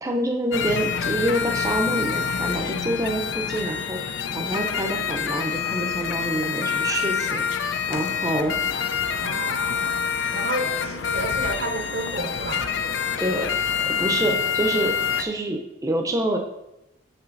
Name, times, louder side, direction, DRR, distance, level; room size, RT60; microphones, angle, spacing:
voice 1, 0.0-8.5 13.2-13.5 13.9-16.4, right 1 dB, 15° right, 3 dB, 0.7 m, -27 dB
sound 1, 0.5-15.3, left 7 dB, 65° left, 0.5 m, -26 dB
voice 2, 9.2-10.0 10.3-12.7, right 2 dB, 50° right, 5 dB, 0.8 m, -31 dB
6.0 x 5.7 x 4.0 m, 0.91 s
head